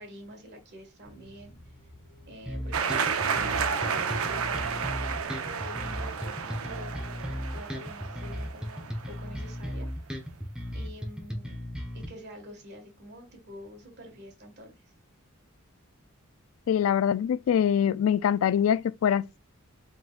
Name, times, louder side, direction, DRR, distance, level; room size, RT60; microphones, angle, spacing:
voice 1, 0.0-1.5 2.3-4.9 5.4-6.9 7.3-9.9 10.7-11.6 11.9-14.7, equal, 50° right, 1.8 m, -47 dB
sound 1, 1.0-6.4, equal, 40° left, 1.5 m, -53 dB
sound 2, 2.5-12.1, equal, 5° right, 1.1 m, -36 dB
sound 3, 2.7-9.4, right 6 dB, 75° right, 0.6 m, -32 dB
voice 2, 16.7-19.4, left 8 dB, 70° left, 0.3 m, -24 dB
4.8 x 3.9 x 2.5 m
head